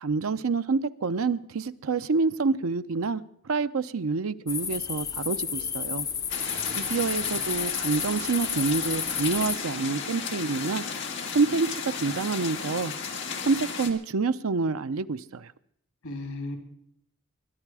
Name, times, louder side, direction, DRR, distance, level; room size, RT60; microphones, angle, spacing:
voice 1, 0.0-6.1 6.8-10.8 11.3-12.9 13.5-15.5, right 4 dB, 75° right, 12 dB, 0.6 m, -27 dB
sound 1, 4.5-9.6, left 6 dB, 15° left, 0.5 m, -31 dB
sound 2, 6.3-13.9, left 5 dB, 55° left, 1.8 m, -34 dB
voice 2, 6.4-7.4 16.0-16.6, left 2 dB, 90° left, 5 dB, 3.2 m, -38 dB
22.5 x 11.0 x 4.8 m, 0.70 s
head